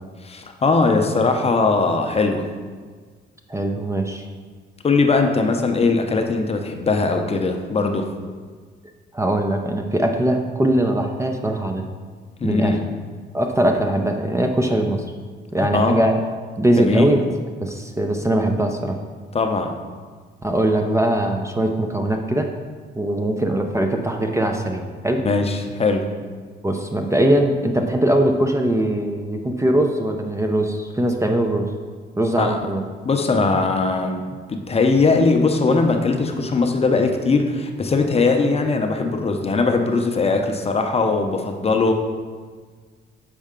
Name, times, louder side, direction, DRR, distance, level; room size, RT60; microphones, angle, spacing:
voice 1, 0.2-2.5 4.8-8.1 12.4-12.8 15.7-16.0 16.8-17.0 19.3-19.7 25.2-26.1 32.4-32.6 33.0-41.9, left 3 dB, 30° left, 4 dB, 0.6 m, -20 dB
voice 2, 3.5-4.3 9.1-11.8 12.4-12.8 13.3-15.0 15.5-16.2 16.6-17.2 17.6-19.0 20.4-22.5 22.9-25.2 26.6-31.7 32.2-32.8, right 1 dB, 15° right, 3 dB, 0.5 m, -21 dB
6.6 x 4.3 x 3.7 m, 1.5 s
cardioid pair, 90°, 20 cm